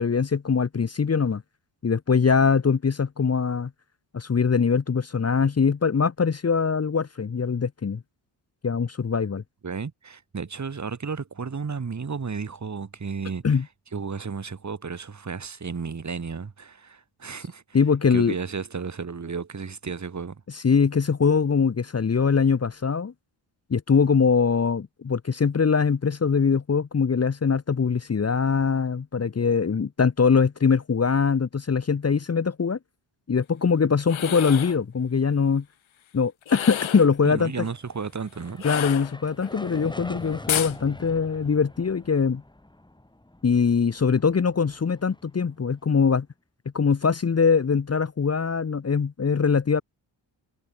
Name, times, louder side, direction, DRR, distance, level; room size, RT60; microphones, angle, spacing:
voice 1, 0.0-1.4 1.8-3.7 4.1-8.0 8.6-9.4 13.4-13.6 17.7-18.4 20.5-23.1 23.7-32.8 33.3-35.6 36.1-37.7 38.6-42.4 43.4-46.3 46.7-49.8, left 5 dB, 30° left, 1.3 m, -22 dB
voice 2, 9.6-13.6 13.9-17.6 18.1-20.4 37.2-38.6, right 5 dB, 35° right, 4.2 m, -33 dB
sound 1, 34.0-34.8 36.4-37.1 38.6-39.5 40.5-40.8, left 11 dB, 75° left, 2.6 m, -30 dB
sound 2, 37.6-46.0, left 1 dB, 10° left, 5.2 m, -44 dB
cardioid pair, 100°, 47 cm